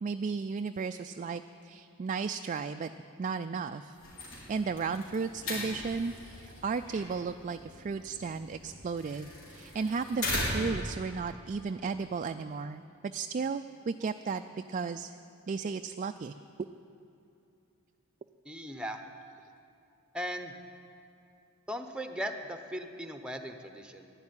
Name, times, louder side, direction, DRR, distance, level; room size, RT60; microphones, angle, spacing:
voice 1, 0.0-2.9 3.2-4.0 4.5-14.4 14.7-15.2 15.5-16.3, right 5 dB, 35° right, 8 dB, 0.3 m, -34 dB
sound 1, 3.9-10.9, left 1 dB, 75° left, 4.0 m, -39 dB
voice 2, 18.4-19.0 20.1-20.5 21.7-24.1, equal, 5° right, 6 dB, 0.9 m, -38 dB
12.0 x 10.5 x 9.6 m, 2.6 s
head